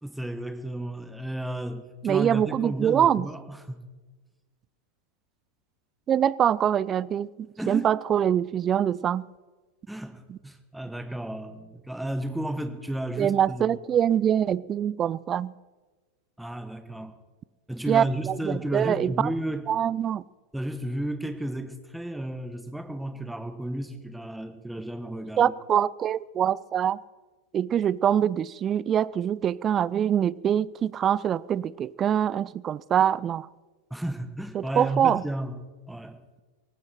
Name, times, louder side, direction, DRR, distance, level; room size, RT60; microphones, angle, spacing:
voice 1, 0.0-3.8 7.6-7.9 9.9-13.7 16.4-17.1 17.7-19.6 20.5-25.5 33.9-35.6 35.9-36.2, right 1 dB, 5° right, 10 dB, 1.3 m, -33 dB
voice 2, 2.0-3.3 6.1-7.3 7.7-9.3 10.3-10.4 13.2-15.5 17.9-19.3 19.7-20.2 25.4-27.0 27.5-33.5 34.5-35.2, right 9 dB, 25° right, 22 dB, 0.4 m, -24 dB
18.0 x 15.5 x 4.5 m, 1.3 s
figure-of-eight pair, 90°, 0 cm